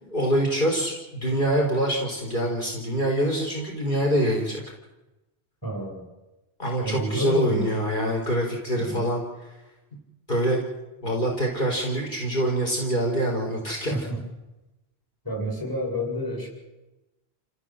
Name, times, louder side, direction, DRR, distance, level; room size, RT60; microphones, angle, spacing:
voice 1, 0.0-4.6 6.6-9.2 10.3-10.6 11.0-14.1, right 1 dB, 50° left, 0 dB, 4.4 m, -25 dB
voice 2, 5.6-6.1 6.8-7.7 8.7-9.1 11.0-11.1 13.9-14.2 15.3-16.5, equal, 20° left, 2 dB, 7.0 m, -30 dB
29.0 x 16.5 x 7.6 m, 1.0 s
omnidirectional pair, 1.1 m